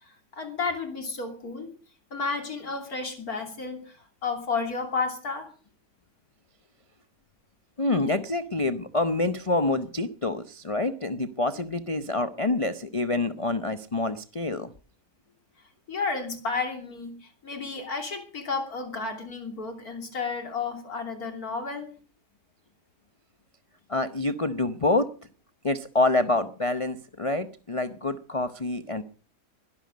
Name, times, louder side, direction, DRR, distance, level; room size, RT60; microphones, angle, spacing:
voice 1, 0.0-1.7 2.1-5.5 15.9-21.9, left 4 dB, 60° left, 5 dB, 3.4 m, -32 dB
voice 2, 7.8-14.7 23.9-25.1 25.6-29.0, left 2 dB, 35° left, 9 dB, 0.5 m, -27 dB
21.0 x 12.0 x 5.2 m, 0.40 s
omnidirectional pair, 1.7 m